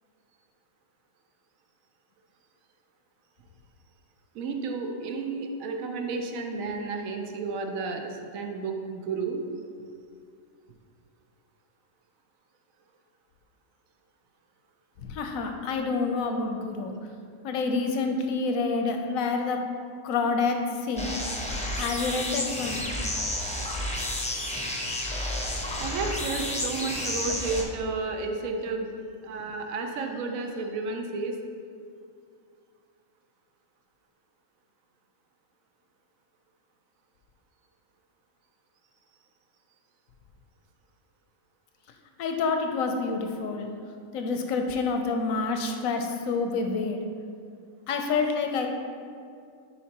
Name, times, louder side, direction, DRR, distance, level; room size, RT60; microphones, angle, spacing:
voice 1, 4.3-9.4 25.8-29.0 29.2-31.4, right 4 dB, 80° right, 3 dB, 1.1 m, -32 dB
voice 2, 15.0-16.9 17.4-19.6 20.0-21.1 21.8-22.9 42.2-43.7 44.1-47.0 47.9-48.7, left 4 dB, 85° left, 4 dB, 1.0 m, -28 dB
sound 1, 21.0-27.6, left 1 dB, 10° left, 0.5 m, -31 dB
10.0 x 4.4 x 2.9 m, 2.4 s
omnidirectional pair, 1.4 m